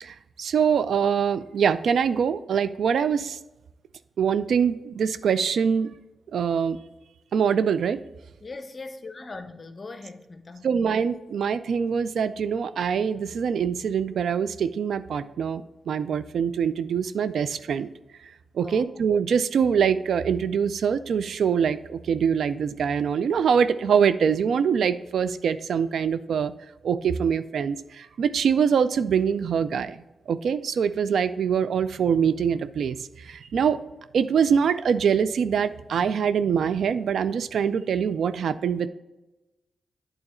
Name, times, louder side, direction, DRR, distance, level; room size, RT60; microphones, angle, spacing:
voice 1, 0.0-3.4 4.2-5.9 6.3-6.8 7.3-8.0 10.6-17.9 18.5-26.5 26.8-33.8 34.1-38.9, right 7 dB, 80° right, 13 dB, 0.3 m, -24 dB
voice 2, 8.4-10.7 18.6-19.0, left 3 dB, 45° left, 9 dB, 0.7 m, -40 dB
8.8 x 3.9 x 4.3 m, 1.0 s
cardioid pair, 50°, 0 cm